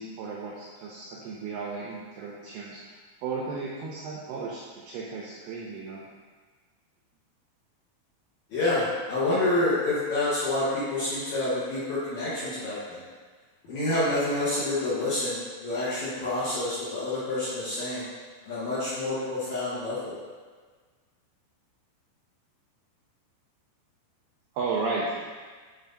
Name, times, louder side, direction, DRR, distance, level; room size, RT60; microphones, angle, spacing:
voice 1, 0.0-6.0 24.5-25.3, right 4 dB, 90° right, -4 dB, 2.2 m, -34 dB
voice 2, 8.5-13.0 13.6-18.1 18.4-20.2, left 2 dB, 85° left, -10 dB, 1.6 m, -28 dB
9.3 x 4.4 x 2.7 m, 1.5 s
omnidirectional pair, 5.3 m